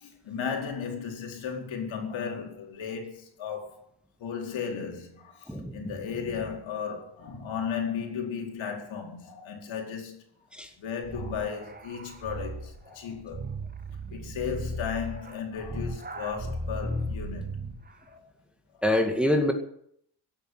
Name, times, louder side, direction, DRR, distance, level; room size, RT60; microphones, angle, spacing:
voice 1, 0.0-3.8 4.2-10.2 10.8-13.4 14.1-17.6 18.1-18.3 18.7-18.8, left 6 dB, 70° left, 4.6 m, -35 dB
voice 2, 5.5-5.8 10.5-10.7 18.8-19.5, left 1 dB, ahead, 2.1 m, -25 dB
sound 1, 11.0-17.9, right 1 dB, 20° right, 1.6 m, -36 dB
16.5 x 9.1 x 9.4 m
cardioid pair, 120°, 48 cm